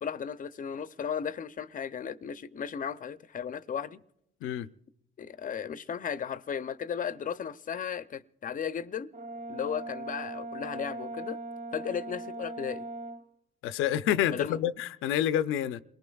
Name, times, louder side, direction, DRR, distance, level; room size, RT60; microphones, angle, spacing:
voice 1, 0.0-4.0 5.2-9.1 9.5-11.4 11.7-12.9 14.3-14.6, left 7 dB, 45° left, 0.5 m, -35 dB
Brass instrument, 9.1-13.2, right 2 dB, 40° right, 0.8 m, -39 dB
voice 2, 13.6-15.8, left 11 dB, 90° left, 0.5 m, -28 dB
28.0 x 19.5 x 2.3 m
cardioid pair, 90°, 20 cm